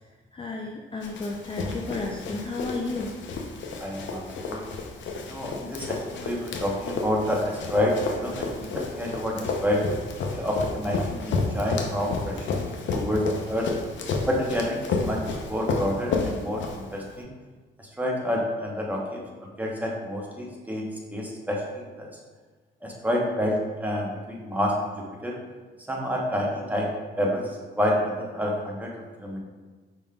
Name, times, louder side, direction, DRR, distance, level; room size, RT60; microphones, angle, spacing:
voice 1, 0.3-3.1, left 3 dB, 25° left, 0 dB, 0.4 m, -32 dB
Run, 1.0-17.2, left 4 dB, 70° left, 0.6 m, -31 dB
voice 2, 3.8-4.6 5.3-9.8 10.3-13.2 13.5-13.7 14.3-15.2 15.5-17.3 17.8-22.1 22.8-25.4 25.9-26.9 27.2-28.9 29.2-29.4, left 1 dB, 10° right, -2 dB, 0.9 m, -28 dB
5.1 x 3.6 x 2.3 m, 1.3 s
cardioid pair, 90°, 20 cm